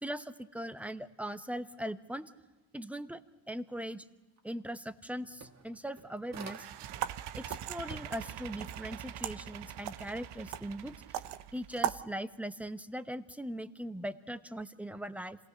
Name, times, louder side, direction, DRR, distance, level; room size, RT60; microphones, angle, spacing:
voice 1, 0.0-2.2 2.7-3.2 3.5-4.1 4.4-6.7 7.3-11.2 11.5-15.4, equal, 5° right, 10 dB, 1.0 m, -40 dB
sound 1, 4.4-4.5 4.8-7.0 7.4-8.4, right 4 dB, 35° right, 1.7 m, -49 dB
sound 2, 6.3-11.9, right 11 dB, 55° right, 0.8 m, -45 dB
sound 3, 6.9-12.1, right 12 dB, 85° right, 0.9 m, -40 dB
27.0 x 18.0 x 6.5 m, 1.2 s
supercardioid pair, 85°, 49 cm